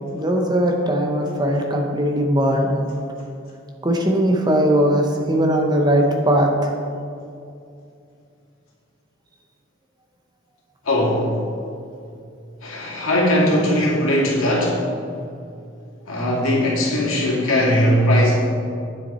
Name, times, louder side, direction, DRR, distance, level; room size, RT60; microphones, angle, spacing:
voice 1, 0.1-2.7 3.8-6.5, right 1 dB, 20° right, 2 dB, 0.9 m, -19 dB
voice 2, 10.8-11.3 12.6-14.8 16.1-18.4, equal, 85° left, -4 dB, 2.3 m, -19 dB
9.8 x 7.3 x 4.3 m, 2.5 s
head